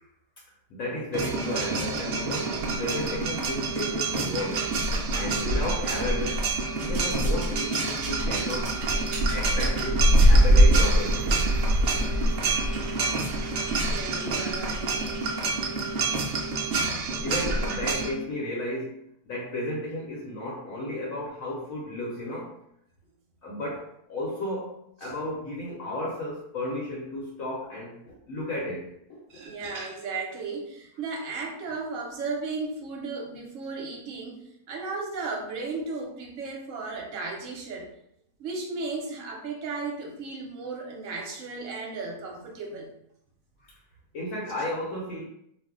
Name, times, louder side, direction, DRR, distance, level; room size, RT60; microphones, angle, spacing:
voice 1, 0.7-4.7 5.1-8.9 9.3-11.3 17.2-22.5 23.4-29.4 43.6-43.7 44.1-45.2, left 1 dB, 65° left, -4 dB, 1.0 m, -33 dB
sound 1, 1.1-18.1, right 1 dB, 80° right, 0.6 m, -24 dB
voice 2, 4.9-5.2 13.8-15.1 25.0-25.1 29.3-37.9 38.4-42.9, right 3 dB, 60° right, 0 dB, 0.9 m, -35 dB
2.6 x 2.1 x 3.6 m, 0.74 s
omnidirectional pair, 1.7 m